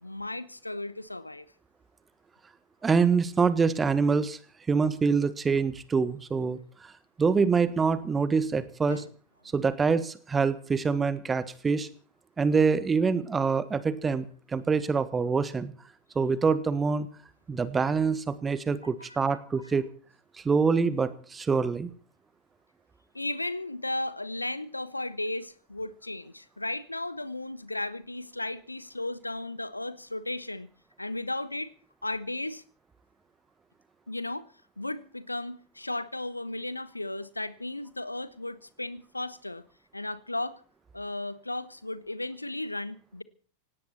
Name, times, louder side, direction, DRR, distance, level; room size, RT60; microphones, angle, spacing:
voice 1, 0.0-1.4 8.9-9.1 19.0-19.4 23.1-30.7 31.0-31.7 32.0-32.6 34.1-34.5 34.8-39.6 39.9-40.6 40.9-43.2, left 2 dB, 85° left, 1.1 m, -35 dB
voice 2, 2.8-4.4 4.7-6.6 7.2-9.0 9.5-11.9 12.4-14.2 14.5-15.7 16.1-17.1 17.5-19.8 20.4-21.9, right 5 dB, 15° right, 1.5 m, -25 dB
18.5 x 17.5 x 4.3 m
figure-of-eight pair, 90°, 0 cm